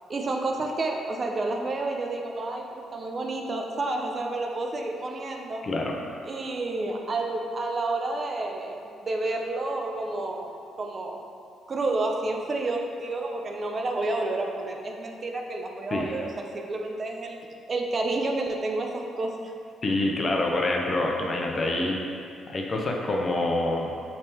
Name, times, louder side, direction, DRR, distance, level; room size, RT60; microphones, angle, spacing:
voice 1, 0.1-5.7 6.2-10.5 10.8-11.2 11.7-17.4 17.7-19.5, right 2 dB, 40° right, 2 dB, 0.4 m, -30 dB
voice 2, 5.6-5.9 15.9-16.2 19.8-22.2 22.5-23.9, left 2 dB, 40° left, 0 dB, 0.6 m, -26 dB
5.2 x 3.3 x 2.9 m, 2.4 s
cardioid pair, 90°, 0 cm